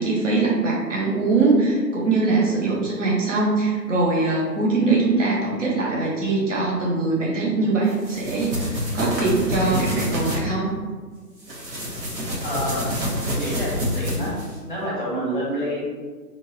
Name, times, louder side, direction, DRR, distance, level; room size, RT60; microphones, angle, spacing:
voice 1, 0.0-10.7, right 3 dB, 50° right, -4 dB, 0.8 m, -22 dB
sound 1, 7.9-10.4 11.4-14.6, equal, 90° right, 1.2 m, -27 dB
voice 2, 12.4-12.9 13.2-14.3 14.6-15.8, equal, 30° left, -6 dB, 0.7 m, -28 dB
2.9 x 2.6 x 2.6 m, 1.5 s
hypercardioid pair, 175°, 50 cm